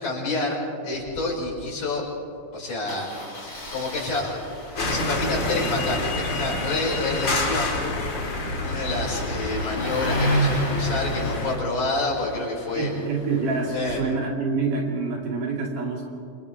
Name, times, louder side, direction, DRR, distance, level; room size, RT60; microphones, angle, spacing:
voice 1, 0.0-2.0 2.5-4.4 4.8-7.8 8.6-12.9 13.7-14.0, left 2 dB, 70° left, -5 dB, 7.3 m, -28 dB
Engine starting, 0.9-1.2 1.5-1.6 1.8-2.0 2.9-13.9, equal, 20° left, 3.6 m, -32 dB
sound 1, 4.8-11.6, left 2 dB, 35° left, 2.7 m, -28 dB
voice 2, 12.7-16.1, right 4 dB, 75° right, -1 dB, 4.2 m, -27 dB
27.5 x 27.5 x 3.6 m, 2.7 s
omnidirectional pair, 3.7 m